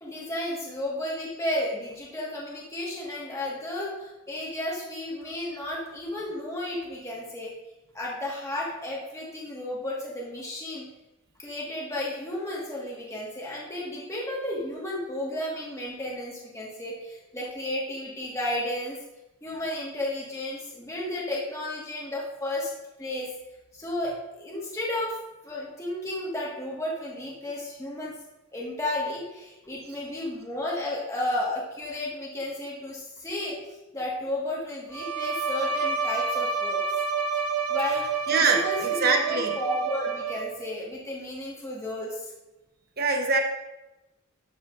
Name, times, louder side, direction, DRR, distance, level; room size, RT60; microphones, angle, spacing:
voice 1, 0.0-7.5 7.9-10.9 11.4-19.0 19.4-22.7 23.0-23.3 23.7-25.2 25.4-28.1 28.5-33.6 33.9-36.8 37.7-38.1 38.4-42.3, left 1 dB, 15° left, -4 dB, 1.5 m, -33 dB
Bowed string instrument, 34.9-40.7, right 5 dB, 80° right, 0.8 m, -29 dB
voice 2, 38.3-39.6 43.0-43.4, right 4 dB, 45° right, 3 dB, 1.0 m, -24 dB
12.5 x 7.4 x 2.5 m, 0.99 s
head